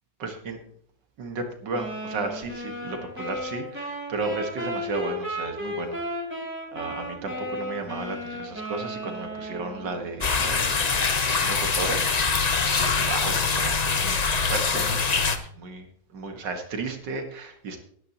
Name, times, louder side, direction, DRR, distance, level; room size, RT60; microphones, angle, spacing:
voice 1, 0.2-0.6 1.2-6.0 6.7-15.9 16.1-17.8, right 3 dB, 90° right, 5 dB, 2.3 m, -34 dB
sound 1, 1.7-10.1, equal, 5° right, 3.7 m, -34 dB
sound 2, 10.2-15.4, left 5 dB, 35° left, 0.6 m, -24 dB
18.5 x 10.5 x 3.0 m, 0.62 s
omnidirectional pair, 1.8 m